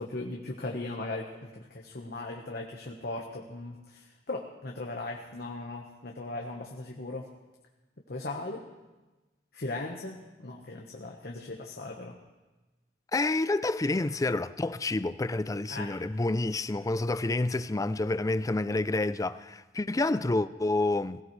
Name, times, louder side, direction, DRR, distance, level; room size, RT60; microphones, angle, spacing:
voice 1, 0.0-7.3 8.1-8.6 9.5-12.2 15.7-16.0, left 2 dB, 60° left, 1.2 m, -38 dB
voice 2, 13.1-21.2, left 2 dB, 20° left, 0.4 m, -28 dB
22.0 x 17.0 x 3.2 m
head